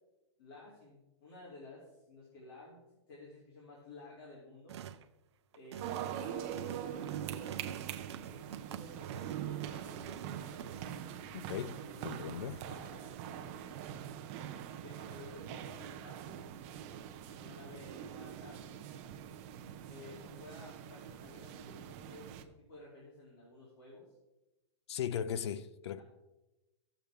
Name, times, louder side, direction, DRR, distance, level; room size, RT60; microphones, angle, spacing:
voice 1, 0.4-2.8 3.1-4.8 5.5-7.6 8.3-10.8 11.7-13.8 14.8-16.5 17.3-18.8 19.9-24.1 25.9-26.0, left 2 dB, 50° left, 2.9 m, -54 dB
sound 1, 4.7-5.1 5.5-10.8, right 10 dB, 70° right, 0.6 m, -45 dB
sound 2, 5.8-22.4, right 10 dB, 30° right, 0.5 m, -44 dB
voice 2, 11.3-12.6 24.9-26.0, left 9 dB, 70° left, 0.6 m, -38 dB
13.5 x 7.8 x 3.5 m
supercardioid pair, 175°, 15 cm